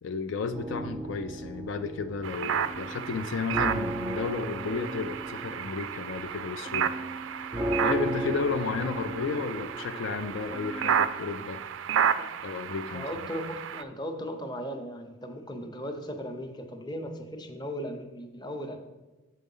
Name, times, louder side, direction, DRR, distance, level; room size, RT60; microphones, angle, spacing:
voice 1, 0.0-6.9 7.8-11.6 12.4-13.1, left 5 dB, 70° left, 8 dB, 0.4 m, -32 dB
sound 1, 0.5-11.1, right 1 dB, 15° right, 0.4 m, -36 dB
sound 2, 2.2-13.8, right 8 dB, 85° right, 0.4 m, -32 dB
voice 2, 12.9-18.8, equal, 20° left, 6 dB, 0.7 m, -37 dB
6.8 x 5.1 x 5.4 m, 1.1 s
head